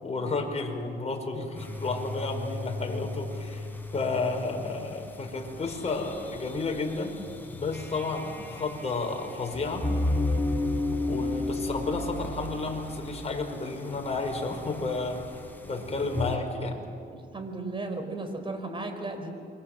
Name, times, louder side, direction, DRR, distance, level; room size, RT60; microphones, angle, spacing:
voice 1, 0.0-3.7 3.9-7.1 7.5-9.9 11.0-15.2 15.6-16.8, left 3 dB, 35° left, 2 dB, 5.5 m, -32 dB
sound 1, 1.6-16.4, left 2 dB, 10° left, 4.8 m, -34 dB
voice 2, 17.1-19.3, right 2 dB, 25° right, 6 dB, 4.9 m, -35 dB
28.0 x 24.0 x 7.6 m, 2.6 s
cardioid pair, 90°, 20 cm